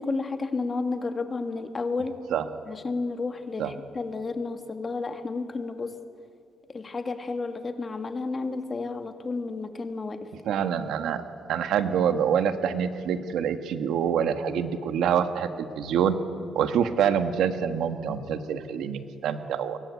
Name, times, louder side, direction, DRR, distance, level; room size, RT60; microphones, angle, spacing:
voice 1, 0.0-2.1 2.7-5.9 6.7-10.2 10.5-10.6, left 3 dB, 25° left, 7 dB, 1.9 m, -31 dB
voice 2, 10.4-11.2 11.5-16.1 16.5-19.8, right 8 dB, 85° right, 8 dB, 1.6 m, -26 dB
29.0 x 22.5 x 8.5 m, 2.4 s
cardioid pair, 135°, 0 cm